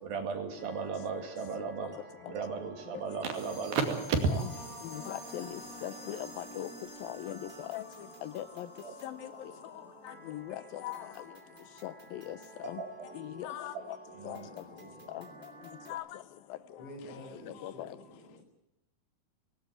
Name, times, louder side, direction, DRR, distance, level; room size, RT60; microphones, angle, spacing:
voice 1, 0.0-2.0 2.3-4.2 8.8-8.9 12.8-12.9, right 5 dB, 70° right, 5 dB, 4.2 m, -34 dB
sound 1, 0.6-15.9, right 3 dB, 20° right, 2.5 m, -53 dB
sound 2, 3.3-9.6, equal, 45° right, 6.1 m, -49 dB
voice 2, 4.9-6.7 7.0-7.8 8.2-8.7 9.0-9.2 10.3-11.0 11.8-12.4 12.6-12.8 13.2-13.7 14.3-14.4 15.1-15.2 15.9-16.0 17.6-17.9, left 13 dB, 75° left, 15 dB, 2.5 m, -39 dB
voice 3, 14.1-15.5 16.8-18.4, equal, 35° left, 2 dB, 6.6 m, -50 dB
18.5 x 17.5 x 9.1 m, 0.88 s
omnidirectional pair, 4.4 m